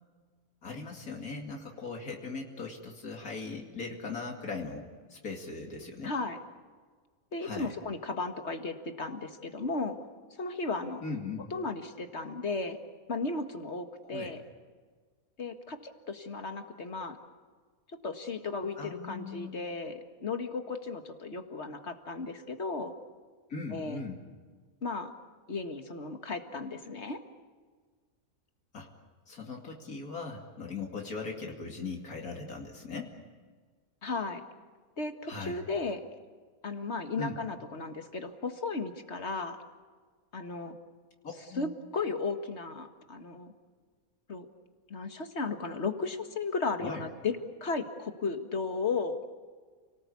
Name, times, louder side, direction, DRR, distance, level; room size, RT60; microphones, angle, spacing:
voice 1, 0.6-6.1 7.4-7.7 11.0-11.4 14.0-14.3 18.8-19.6 23.5-24.2 28.7-28.9 29.3-33.1 35.3-35.6 37.2-37.4 41.5-41.7 46.8-47.0, left 4 dB, 85° left, 1 dB, 3.0 m, -39 dB
voice 2, 6.0-6.4 7.3-10.0 10.4-11.0 11.5-12.8 13.1-14.4 15.4-17.2 18.0-22.9 23.7-24.0 24.8-25.1 25.5-27.2 34.0-34.4 35.0-36.0 36.6-39.6 40.3-40.8 41.6-43.5 44.3-44.5 44.9-49.2, left 3 dB, 50° left, 6 dB, 2.0 m, -35 dB
29.5 x 19.0 x 8.4 m, 1.5 s
omnidirectional pair, 1.5 m